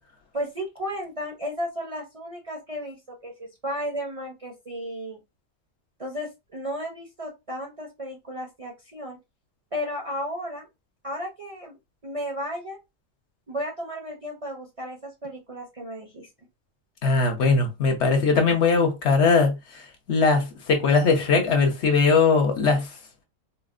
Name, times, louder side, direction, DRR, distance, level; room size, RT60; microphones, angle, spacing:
voice 1, 0.3-5.2 6.0-9.2 9.7-10.7 11.0-11.7 12.0-12.8 13.5-16.3, equal, 40° right, 0.5 m, -34 dB
voice 2, 17.0-19.6 20.1-22.9, left 4 dB, 65° left, 1.0 m, -20 dB
3.8 x 2.0 x 2.4 m
omnidirectional pair, 1.3 m